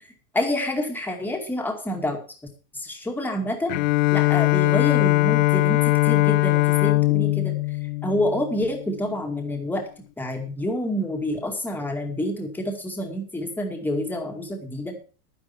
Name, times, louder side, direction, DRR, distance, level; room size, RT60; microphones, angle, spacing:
voice 1, 0.3-2.2 2.8-3.8 4.1-7.5 8.0-9.8 10.2-15.0, left 1 dB, 5° left, 2 dB, 2.3 m, -28 dB
Bowed string instrument, 3.7-9.0, left 20 dB, 65° left, 0.5 m, -21 dB
11.0 x 10.0 x 5.8 m, 0.36 s
supercardioid pair, 150°, 43 cm